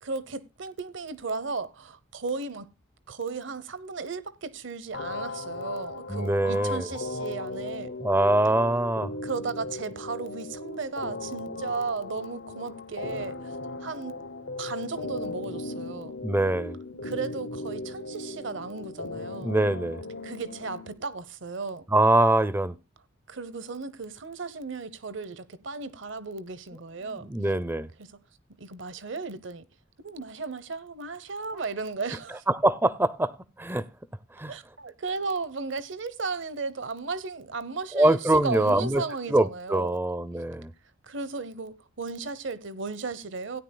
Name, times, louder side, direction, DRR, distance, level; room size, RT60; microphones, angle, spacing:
voice 1, 0.0-2.7 3.1-7.9 9.2-14.2 14.6-16.1 17.0-19.5 20.2-21.9 23.3-27.3 28.0-28.2 28.6-29.7 30.0-32.4 34.5-40.0 41.0-43.6, right 4 dB, 65° right, 0.8 m, -35 dB
sound 1, 4.9-20.9, left 2 dB, 65° left, 1.1 m, -37 dB
voice 2, 6.1-6.9 8.0-9.1 16.2-16.8 19.4-20.0 21.9-22.8 27.1-27.9 32.5-33.3 33.6-33.9 34.4-34.5 37.9-39.0 39.3-40.7, right 1 dB, 10° right, 0.5 m, -23 dB
16.5 x 10.0 x 2.2 m
head